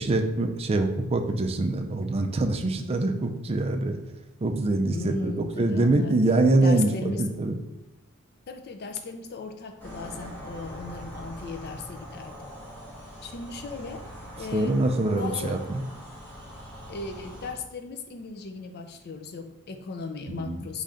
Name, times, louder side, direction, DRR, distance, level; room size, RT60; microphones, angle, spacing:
voice 1, 0.0-4.0 4.4-7.6 14.5-15.8 20.3-20.6, right 2 dB, 25° right, 5 dB, 0.4 m, -24 dB
voice 2, 4.9-6.3 6.6-7.2 8.5-12.5 13.2-14.0 14.4-14.8 15.1-15.6 16.9-20.8, left 3 dB, 50° left, 6 dB, 0.4 m, -36 dB
sound 1, 9.8-17.5, equal, 10° left, 1.1 m, -42 dB
3.9 x 3.2 x 3.7 m, 0.96 s
head